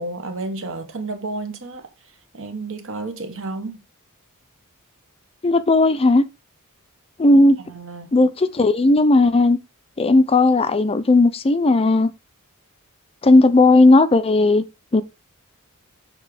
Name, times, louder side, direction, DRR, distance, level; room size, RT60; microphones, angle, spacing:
voice 1, 0.0-1.9 2.3-3.8 7.3-8.1, right 2 dB, 65° right, 1.3 m, -31 dB
voice 2, 5.4-6.2 7.2-7.6 8.1-9.6 10.0-12.1 13.2-14.6 14.9-15.0, left 2 dB, 25° left, 0.4 m, -15 dB
6.8 x 3.6 x 4.7 m
head